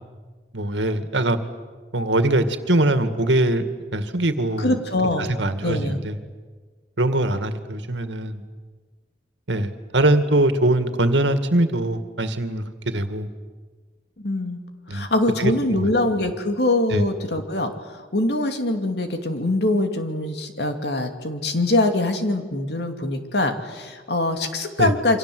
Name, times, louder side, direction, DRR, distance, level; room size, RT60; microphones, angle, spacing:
voice 1, 0.5-1.4 1.9-3.6 3.9-4.8 5.2-6.2 7.0-8.4 9.5-13.3 14.9-15.1 15.4-15.9 16.9-17.0 24.8-24.9, right 1 dB, 85° right, 9 dB, 2.1 m, -22 dB
voice 2, 4.6-5.3 5.6-6.0 14.2-14.6 14.9-25.2, left 2 dB, 65° left, 6 dB, 2.6 m, -23 dB
28.5 x 25.0 x 7.9 m, 1.4 s
head